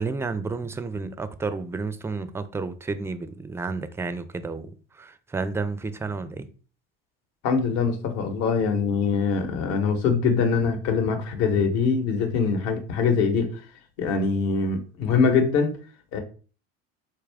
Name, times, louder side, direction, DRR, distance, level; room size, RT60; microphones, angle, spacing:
voice 1, 0.0-6.5, right 4 dB, 10° right, 0.4 m, -31 dB
voice 2, 7.4-13.5 14.0-15.7 16.1-16.2, left 5 dB, 60° left, 1.0 m, -23 dB
4.4 x 2.4 x 3.3 m
hypercardioid pair, 85°, 29 cm